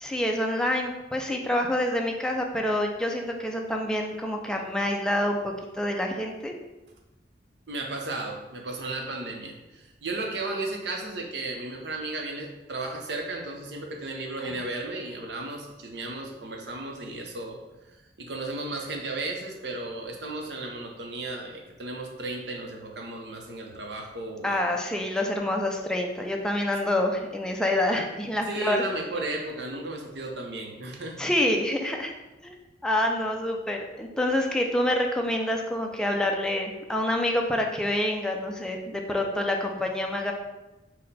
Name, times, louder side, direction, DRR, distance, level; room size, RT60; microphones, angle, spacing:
voice 1, 0.0-6.5 24.4-28.8 31.2-32.1 32.4-32.5 32.8-40.3, left 1 dB, 5° left, 1 dB, 0.3 m, -27 dB
voice 2, 7.7-17.6 18.2-24.8 28.5-31.3, right 2 dB, 70° right, 1 dB, 0.7 m, -34 dB
4.1 x 2.1 x 4.0 m, 1.0 s
head